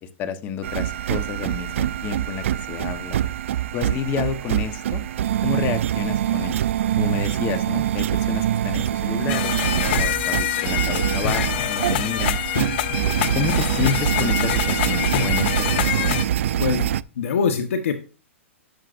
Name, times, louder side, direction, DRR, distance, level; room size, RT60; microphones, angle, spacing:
voice 1, 0.0-3.2 3.7-5.0 5.4-6.6 7.0-12.4 13.3-16.2, left 7 dB, 25° left, 10 dB, 1.0 m, -30 dB
sound 1, 0.6-17.0, right 11 dB, 70° right, 0.4 m, -24 dB
sound 2, 9.3-16.2, left 13 dB, 50° left, 0.5 m, -25 dB
voice 2, 16.6-17.9, left 6 dB, 80° left, 6 dB, 1.2 m, -24 dB
17.0 x 6.4 x 2.5 m, 0.35 s
hypercardioid pair, 150°, 7 cm